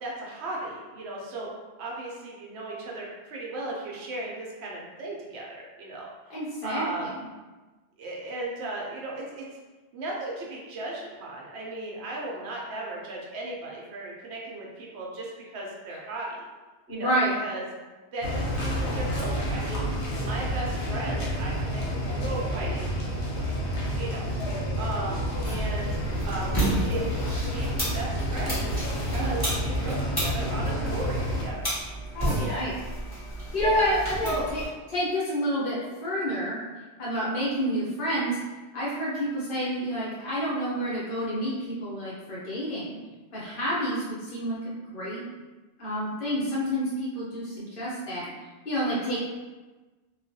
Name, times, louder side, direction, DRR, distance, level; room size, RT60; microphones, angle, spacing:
voice 1, 0.0-1.5 1.8-7.1 8.0-9.4 9.9-16.4 16.9-17.1 17.4-17.6 18.1-19.9 20.2-23.1 24.0-24.3 24.8-25.9 26.2-27.2 27.5-28.7 29.0-31.7 32.3-32.6 33.5-34.5, right 2 dB, 75° right, -3 dB, 0.8 m, -36 dB
voice 2, 6.3-7.1 16.9-17.3 32.1-32.7 33.5-34.6 34.9-36.6 37.0-38.4 38.7-43.0 43.3-45.2 45.8-48.2 48.6-49.2, equal, 55° left, -7 dB, 0.9 m, -29 dB
sound 1, 18.2-31.5, equal, 80° left, 1.0 m, -29 dB
sound 2, 25.4-34.7, right 1 dB, 20° left, 1.1 m, -32 dB
2.4 x 2.2 x 2.6 m, 1.2 s
omnidirectional pair, 1.1 m